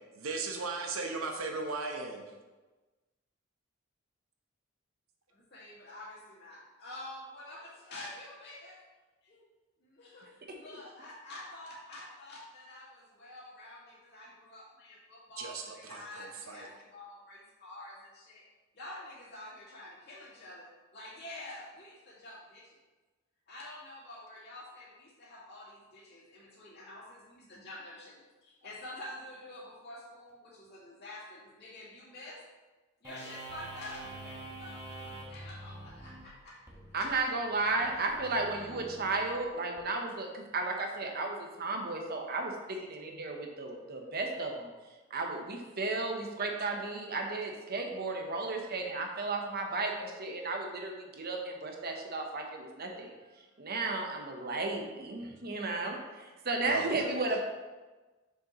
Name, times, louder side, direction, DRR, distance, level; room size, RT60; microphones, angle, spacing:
voice 1, 0.2-2.2 15.4-15.6 15.9-16.7 56.6-56.9, right 3 dB, 90° right, 3 dB, 1.0 m, -36 dB
voice 2, 5.3-8.8 9.2-9.4 9.8-18.4 18.7-22.8 23.5-32.4 33.0-36.6 36.9-37.3 37.8-38.1 56.7-57.4, left 1 dB, 55° left, -6 dB, 2.2 m, -48 dB
sound 1, 33.0-39.8, right 2 dB, 15° right, 1.2 m, -47 dB
voice 3, 36.9-44.7 45.1-53.1 53.6-57.4, right 3 dB, 50° right, 2 dB, 1.0 m, -34 dB
6.9 x 6.2 x 3.1 m, 1.2 s
head